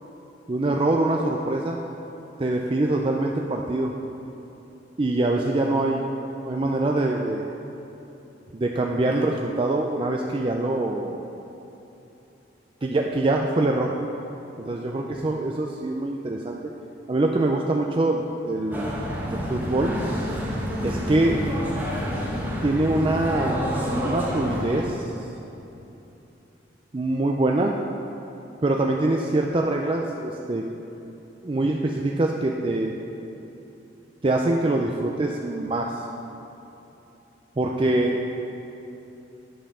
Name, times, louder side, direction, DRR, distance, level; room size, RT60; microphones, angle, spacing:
voice 1, 0.5-1.8 2.4-3.9 5.0-6.1 6.4-7.5 8.5-11.3 12.8-13.9 14.6-16.6 17.1-19.0 19.3-19.9 20.8-21.4 22.6-23.6 24.0-25.1 26.9-27.8 28.6-30.6 31.4-33.0 34.2-36.0 37.6-38.2, right 2 dB, 30° right, 0 dB, 0.4 m, -24 dB
sound 1, 18.7-24.8, equal, 10° right, 1.2 m, -28 dB
10.0 x 5.5 x 6.7 m, 3.0 s
head